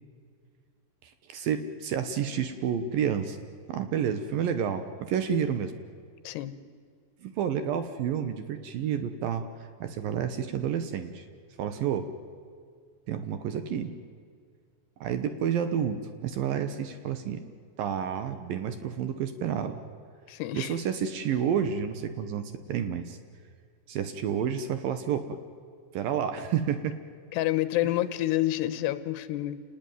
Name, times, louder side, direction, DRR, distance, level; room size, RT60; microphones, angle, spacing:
voice 1, 1.0-3.4 3.7-5.7 7.2-9.5 9.8-11.3 11.6-12.1 13.1-13.9 15.0-17.4 17.8-19.8 20.5-23.2 23.9-25.4 25.9-27.0, right 8 dB, 70° right, 9 dB, 2.3 m, -30 dB
voice 2, 6.2-6.6 20.3-20.7 27.3-29.6, left 15 dB, 75° left, 14 dB, 2.9 m, -28 dB
28.5 x 19.5 x 9.3 m, 2.1 s
omnidirectional pair, 5.1 m